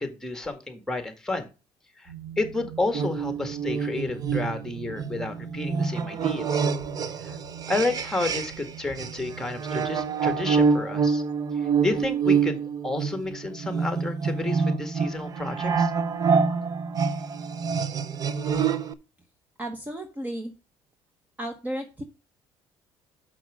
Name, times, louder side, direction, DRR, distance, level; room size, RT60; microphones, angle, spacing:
voice 1, 0.0-1.5 2.0-6.7 7.2-7.4 7.7-11.2 11.6-15.9, left 2 dB, 5° left, 7 dB, 1.7 m, -31 dB
sound 1, 2.1-10.8, right 8 dB, 80° right, 2.7 m, -44 dB
sound 2, 2.9-8.7 9.0-18.9, right 5 dB, 40° right, 0.7 m, -26 dB
voice 2, 19.6-20.5 21.4-22.0, right 1 dB, 15° right, 6 dB, 1.1 m, -33 dB
6.1 x 5.9 x 6.1 m, 0.31 s
cardioid pair, 110°, 10 cm